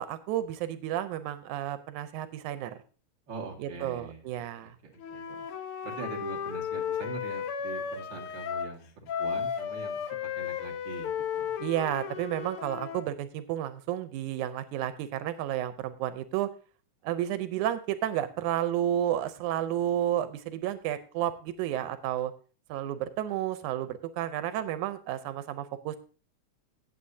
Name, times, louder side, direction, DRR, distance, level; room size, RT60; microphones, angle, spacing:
voice 1, 0.0-2.8 3.6-4.8 11.6-16.5 17.0-22.3 22.7-26.0, right 11 dB, 90° right, 11 dB, 2.2 m, -31 dB
voice 2, 3.3-4.2 4.8-5.2 5.8-10.1 10.4-11.5, right 4 dB, 40° right, 0 dB, 2.5 m, -42 dB
Wind instrument woodwind instrument, 5.0-8.7 9.1-13.1, left 7 dB, 70° left, 1.4 m, -34 dB
17.5 x 7.6 x 2.7 m, 0.37 s
omnidirectional pair, 3.4 m